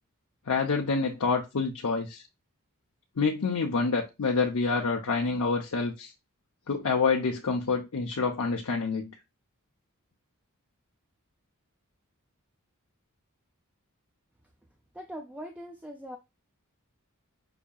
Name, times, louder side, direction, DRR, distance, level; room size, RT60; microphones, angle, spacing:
voice 1, 0.5-2.2 3.2-6.1 6.7-9.1, left 4 dB, 70° left, 0.7 m, -27 dB
voice 2, 15.0-16.2, equal, 5° right, 0.4 m, -41 dB
5.8 x 2.7 x 2.3 m
head